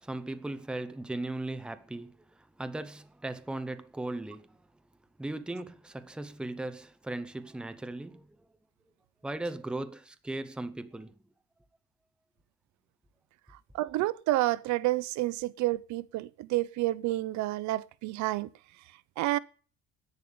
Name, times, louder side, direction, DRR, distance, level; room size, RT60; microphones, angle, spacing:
voice 1, 0.0-4.6 5.2-8.4 9.2-11.1, right 2 dB, 5° right, 0.7 m, -38 dB
voice 2, 13.7-18.5 19.2-19.4, right 17 dB, 65° right, 0.6 m, -29 dB
11.0 x 10.0 x 8.5 m
cardioid pair, 175°, 31 cm